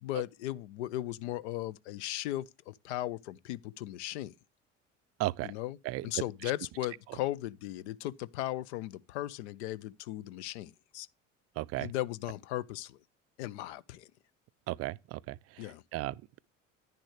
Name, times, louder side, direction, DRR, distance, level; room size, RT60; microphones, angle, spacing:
voice 1, 0.0-4.3 5.4-5.8 6.0-11.1 11.8-13.0 13.4-14.1 15.6-15.8, left 15 dB, 65° left, 0.6 m, -37 dB
voice 2, 5.2-5.5 5.8-6.5 11.6-11.9 14.7-16.4, right 18 dB, 40° right, 0.4 m, -36 dB
10.5 x 10.0 x 3.0 m
figure-of-eight pair, 65°, 37 cm